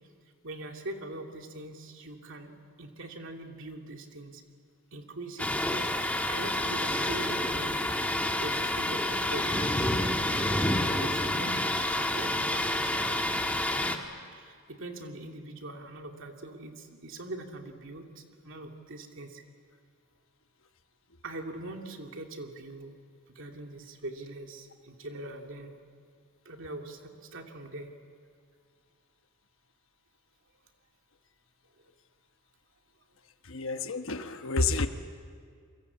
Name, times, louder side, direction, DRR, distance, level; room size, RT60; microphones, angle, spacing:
voice 1, 0.4-4.4 4.9-8.0 8.4-13.1 14.3-19.4 21.2-23.0 23.3-25.8 26.4-27.9, right 2 dB, 60° right, 3 dB, 2.7 m, -42 dB
Thunder, 5.4-14.0, left 1 dB, 5° left, 1.6 m, -29 dB
voice 2, 33.4-34.9, left 3 dB, 65° left, 7 dB, 1.2 m, -29 dB
28.5 x 23.5 x 8.5 m, 2.1 s
head